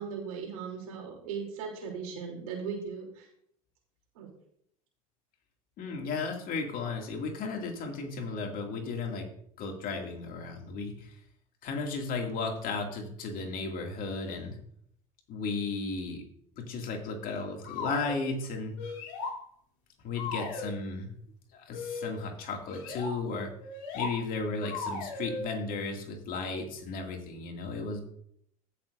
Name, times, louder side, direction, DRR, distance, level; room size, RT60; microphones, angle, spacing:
voice 1, 0.0-3.3 4.1-4.3, right 6 dB, 80° right, 1 dB, 3.1 m, -38 dB
voice 2, 5.8-9.3 9.6-11.1 11.6-14.6 15.3-16.2 16.5-18.8 20.0-21.1 21.5-23.5 23.9-28.0, left 4 dB, 50° left, 2 dB, 2.3 m, -34 dB
sound 1, 17.6-18.2 18.8-19.4 20.1-20.7 21.7-22.1 22.7-23.1 23.6-24.1 24.6-25.4, left 3 dB, 65° left, 2.9 m, -37 dB
15.5 x 6.7 x 2.6 m, 0.69 s
hypercardioid pair, 80°, 18 cm